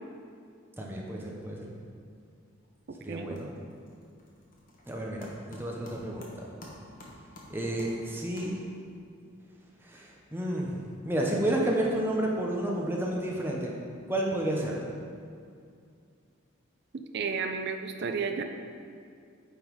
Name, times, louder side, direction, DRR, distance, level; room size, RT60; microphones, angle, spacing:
voice 1, 0.8-1.7 3.0-3.5 4.9-6.5 7.5-8.5 9.8-13.7 14.1-14.8, right 1 dB, 10° right, -2 dB, 0.8 m, -31 dB
sound 1, 2.5-2.9 3.1-9.0, left 1 dB, 45° left, 1.1 m, -51 dB
voice 2, 16.9-18.4, right 5 dB, 55° right, 6 dB, 0.4 m, -32 dB
8.8 x 3.9 x 4.7 m, 2.3 s
head